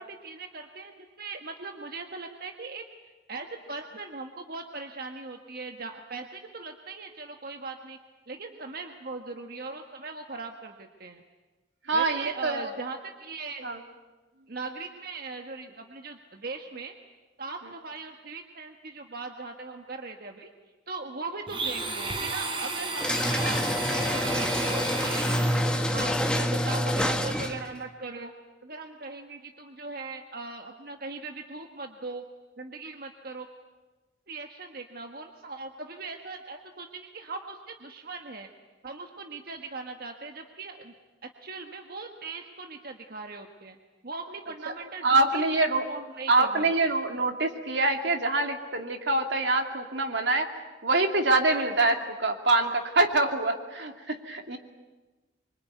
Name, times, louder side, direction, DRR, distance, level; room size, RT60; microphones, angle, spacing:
voice 1, 0.0-2.8 3.3-8.0 8.3-11.2 11.9-13.7 14.5-16.9 17.4-20.5 20.9-25.6 25.9-28.3 28.6-32.2 32.6-33.5 34.3-38.5 38.8-40.9 41.4-43.8 44.0-45.4 45.9-47.0, right 3 dB, 55° right, 4 dB, 1.6 m, -39 dB
voice 2, 11.9-12.7 13.6-13.8 44.7-44.8 45.0-45.8 46.3-50.5 50.8-54.6, right 2 dB, 75° right, 5 dB, 2.7 m, -25 dB
Domestic sounds home sounds, 21.5-25.9, right 3 dB, 30° right, 3.8 m, -33 dB
sound 1, 23.0-27.7, left 1 dB, 5° left, 1.6 m, -27 dB
25.5 x 24.5 x 9.4 m, 1.2 s
head